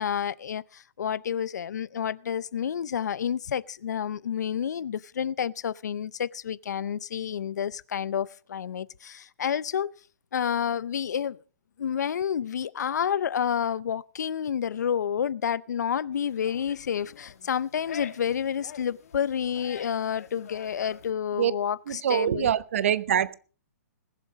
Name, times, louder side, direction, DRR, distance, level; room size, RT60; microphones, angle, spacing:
voice 1, 0.0-9.9 10.3-11.4 11.8-22.5, left 8 dB, 80° left, 0.5 m, -29 dB
sound 1, 16.1-21.1, left 7 dB, 60° left, 1.3 m, -46 dB
voice 2, 21.9-23.3, right 9 dB, 50° right, 0.8 m, -24 dB
20.5 x 7.5 x 5.0 m
hypercardioid pair, 175°, 9 cm